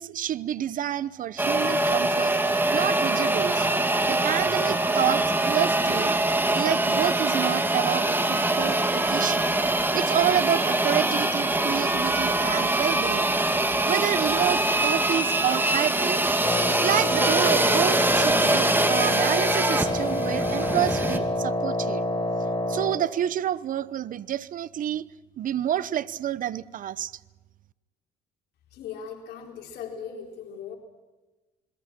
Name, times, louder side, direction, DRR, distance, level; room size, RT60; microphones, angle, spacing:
voice 1, 0.0-3.7 4.1-6.1 6.5-9.6 9.9-13.4 13.9-16.3 16.8-22.0 22.7-25.0 25.4-27.1, right 10 dB, 55° right, 17 dB, 1.0 m, -29 dB
sound 1, 1.4-21.2, right 2 dB, 10° right, 2.6 m, -24 dB
Wind instrument woodwind instrument, 16.4-23.1, left 1 dB, 25° left, 5.3 m, -27 dB
voice 2, 28.7-30.7, left 7 dB, 75° left, 2 dB, 4.4 m, -38 dB
29.0 x 21.5 x 6.2 m, 1.1 s
cardioid pair, 110°, 17 cm